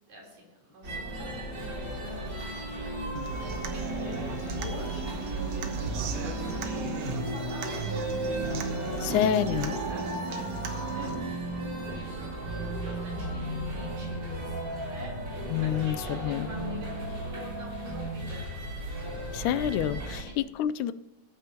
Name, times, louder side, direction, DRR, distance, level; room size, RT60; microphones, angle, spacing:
voice 1, 0.1-7.8 9.6-10.5 10.7-18.4 20.1-20.5, equal, 80° right, -2 dB, 5.2 m, -47 dB
sound 1, 0.8-20.2, right 1 dB, 35° right, 3.4 m, -34 dB
Human voice / Acoustic guitar, 3.2-11.1, right 6 dB, 65° right, 2.1 m, -38 dB
voice 2, 9.0-9.8 15.5-16.5 19.3-20.9, left 10 dB, 90° left, 14 dB, 2.0 m, -28 dB
18.5 x 9.1 x 2.9 m, 1.1 s
omnidirectional pair, 3.4 m